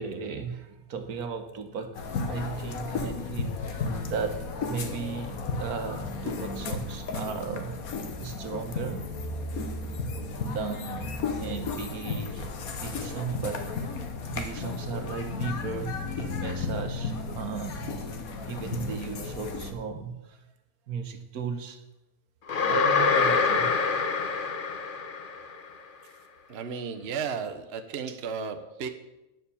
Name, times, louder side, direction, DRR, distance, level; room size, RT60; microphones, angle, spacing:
voice 1, 0.0-2.0 2.3-7.8 8.2-9.1 10.4-14.0 14.3-18.0 18.5-20.4 20.9-21.8 22.6-23.7 28.1-28.2, right 5 dB, 75° right, 7 dB, 1.5 m, -36 dB
sound 1, 1.9-19.7, left 4 dB, 70° left, 1.5 m, -34 dB
sound 2, 22.5-25.6, left 5 dB, 45° left, 0.8 m, -25 dB
voice 2, 26.5-28.9, right 6 dB, 50° right, 7 dB, 1.0 m, -34 dB
9.3 x 7.1 x 6.9 m, 0.97 s
omnidirectional pair, 1.6 m